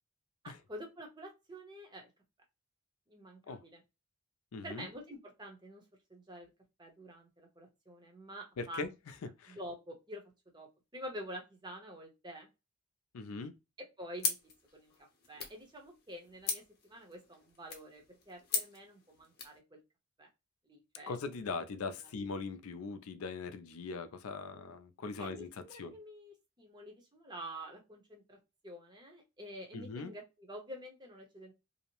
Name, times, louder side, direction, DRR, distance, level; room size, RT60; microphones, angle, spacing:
voice 1, 0.4-2.1 3.1-3.8 4.6-5.8 6.1-6.5 6.8-8.8 9.5-10.2 10.5-12.5 13.8-14.4 14.7-14.9 15.3-19.8 20.2-20.3 20.7-21.2 22.0-22.1 25.2-28.4 28.6-31.5, equal, 20° right, 0.7 m, -48 dB
voice 2, 4.5-4.9 8.6-8.9 9.4-9.6 13.1-13.5 21.1-25.9 29.7-30.1, left 4 dB, 80° left, 0.4 m, -40 dB
sound 1, 14.2-19.6, left 5 dB, 45° left, 0.7 m, -40 dB
2.7 x 2.0 x 2.9 m
head